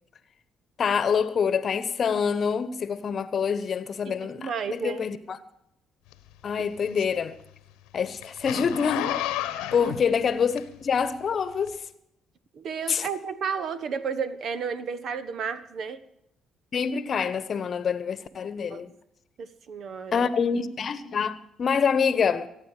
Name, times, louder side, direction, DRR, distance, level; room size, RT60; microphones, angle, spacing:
voice 1, 0.8-5.4 6.4-7.4 7.9-9.2 9.7-11.8 12.9-13.1 16.7-18.9 20.1-22.5, left 6 dB, 50° left, 1.1 m, -26 dB
voice 2, 4.0-5.0 9.8-9.9 12.5-16.0 18.7-18.8 19.4-20.3, right 6 dB, 55° right, 1.1 m, -32 dB
Zipper (clothing), 6.1-11.1 11.6-11.7, left 13 dB, 75° left, 1.1 m, -32 dB
24.5 x 9.2 x 4.9 m
hypercardioid pair, 45°, 0 cm